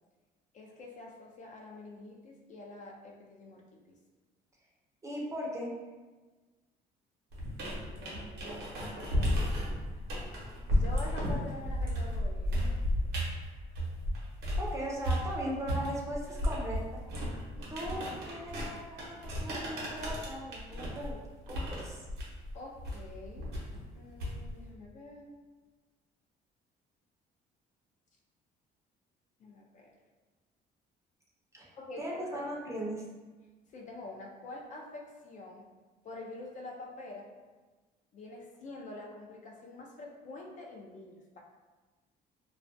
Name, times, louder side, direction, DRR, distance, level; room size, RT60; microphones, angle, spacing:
voice 1, 0.5-4.0 8.0-8.8 9.1-9.5 10.7-13.1 17.8-17.9 22.5-25.4 29.4-29.9 31.7-32.4 33.7-35.7 36.0-37.3 38.1-41.4, left 2 dB, 45° left, 0 dB, 0.4 m, -47 dB
voice 2, 5.0-5.7 14.6-16.8 17.7-21.2 21.5-22.0 31.5-31.7 32.0-33.0, equal, 15° right, -3 dB, 0.5 m, -38 dB
sound 1, 7.3-14.7 15.0-24.7, equal, 80° right, 0.7 m, -34 dB
2.3 x 2.1 x 2.5 m, 1.3 s
cardioid pair, 110°, 17 cm